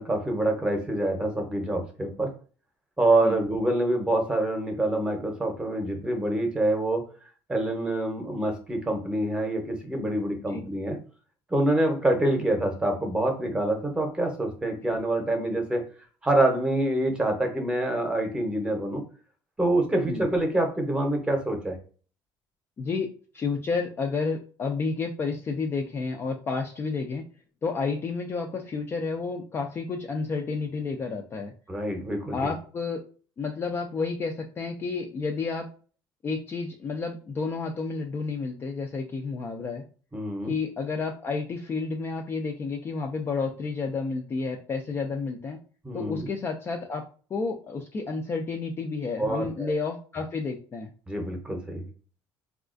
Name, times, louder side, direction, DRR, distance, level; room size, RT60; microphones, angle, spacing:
voice 1, 0.0-2.3 3.0-7.0 7.5-11.0 11.5-15.8 16.2-19.0 19.6-21.8 31.7-32.5 40.1-40.5 45.8-46.3 49.2-49.7 51.1-51.9, right 1 dB, 10° right, 3 dB, 0.7 m, -26 dB
voice 2, 23.3-27.2 27.6-31.5 32.3-33.0 33.4-35.7 36.2-39.8 40.5-45.6 45.9-47.0 47.3-50.9, left 4 dB, 25° left, 2 dB, 0.3 m, -30 dB
4.1 x 2.3 x 2.4 m, 0.40 s
cardioid pair, 150°, 9 cm